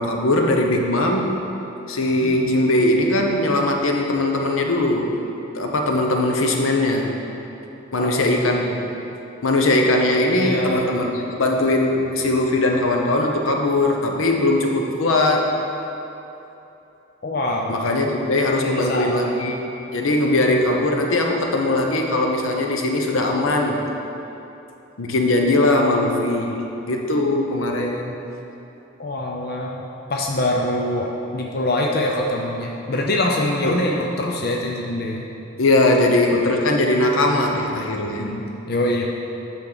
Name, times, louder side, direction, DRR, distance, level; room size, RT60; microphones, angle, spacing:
voice 1, 0.0-1.3 1.9-5.3 5.5-7.2 7.9-8.9 9.4-15.6 17.7-23.8 25.0-26.6 26.9-28.2 33.6-33.8 35.6-38.4, left 2 dB, 80° left, 2 dB, 0.8 m, -20 dB
voice 2, 10.4-11.2 17.2-17.9 18.6-19.4 29.0-29.8 30.1-35.3 38.2-39.1, left 1 dB, 50° left, -1 dB, 0.5 m, -24 dB
8.8 x 6.0 x 4.0 m, 2.9 s
head